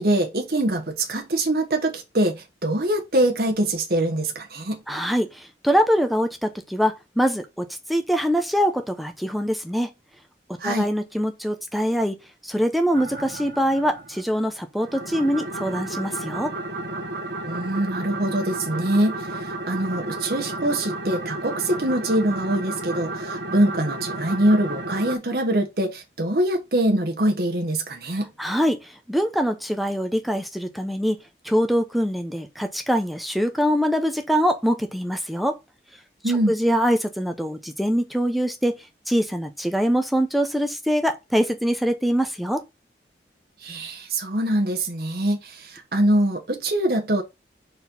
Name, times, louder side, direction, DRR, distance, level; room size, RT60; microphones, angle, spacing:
voice 1, 0.0-4.8 10.6-10.9 17.4-19.2 19.7-28.3 36.2-36.5 43.6-47.2, right 1 dB, 60° right, 1.2 m, -23 dB
voice 2, 4.9-9.9 10.5-12.2 12.4-16.5 28.4-31.2 31.4-35.6 36.5-38.8 39.1-42.6, equal, ahead, 0.6 m, -23 dB
sound 1, 12.9-14.4 14.8-25.2, right 2 dB, 75° right, 1.1 m, -32 dB
4.5 x 4.1 x 5.4 m
head